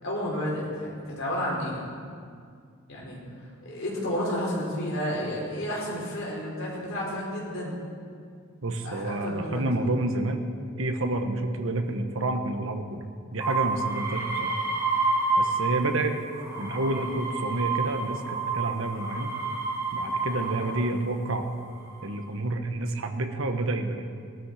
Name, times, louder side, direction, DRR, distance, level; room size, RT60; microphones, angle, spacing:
voice 1, 0.0-1.8 2.9-3.2 3.7-7.8 8.8-9.6, equal, 65° left, -5 dB, 5.2 m, -31 dB
voice 2, 8.6-10.5 10.8-13.0 13.3-14.6 15.4-16.2 16.6-19.4 19.9-21.5 22.0-24.0, right 2 dB, 70° right, 5 dB, 1.3 m, -29 dB
sound 1, 13.4-15.9 16.3-20.9 21.6-22.2, right 3 dB, 15° right, 2.7 m, -29 dB
18.5 x 12.5 x 5.0 m, 2.2 s
head